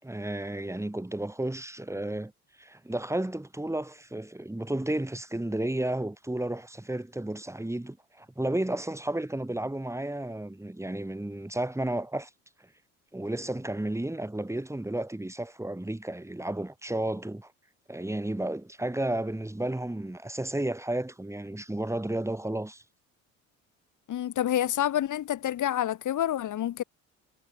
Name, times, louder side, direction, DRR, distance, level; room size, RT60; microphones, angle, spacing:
voice 1, 0.0-2.3 2.6-12.3 13.1-17.5 17.9-22.8, right 1 dB, 5° right, 6.4 m, -32 dB
voice 2, 24.1-26.8, left 11 dB, 55° left, 6.5 m, -28 dB
hypercardioid pair, 60°, 37 cm